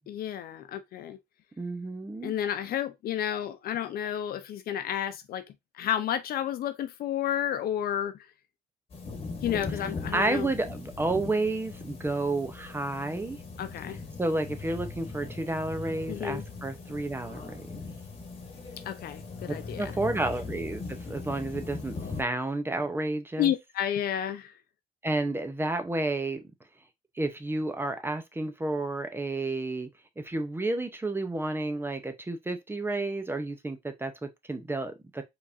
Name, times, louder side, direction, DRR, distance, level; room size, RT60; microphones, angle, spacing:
voice 1, 0.1-1.2 2.2-5.4 5.7-8.1 9.4-10.5 13.6-14.0 16.1-16.4 18.9-20.2 23.4-24.5, left 10 dB, 65° left, 0.7 m, -31 dB
voice 2, 1.6-2.3 9.8-13.4 14.2-17.7 19.5-23.5 25.0-26.4 27.2-29.9 30.2-35.2, right 2 dB, 15° right, 0.7 m, -31 dB
sound 1, 8.9-22.2, left 3 dB, 35° left, 1.4 m, -40 dB
4.7 x 3.6 x 2.6 m
cardioid pair, 110°, 17 cm